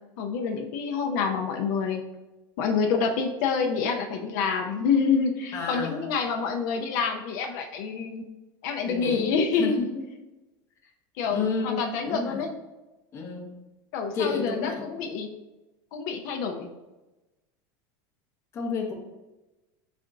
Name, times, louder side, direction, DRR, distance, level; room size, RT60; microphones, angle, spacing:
voice 1, 0.2-2.0 2.6-8.2 8.6-9.7 11.2-12.5 13.9-15.3 15.9-16.7, left 5 dB, 65° left, 3 dB, 0.5 m, -27 dB
voice 2, 5.5-6.0 8.9-9.3 9.6-10.0 11.2-12.4 13.1-13.6 14.1-14.9 18.5-18.9, left 5 dB, 25° left, 1 dB, 0.7 m, -30 dB
4.2 x 2.5 x 4.6 m, 1.1 s
cardioid pair, 165°, 11 cm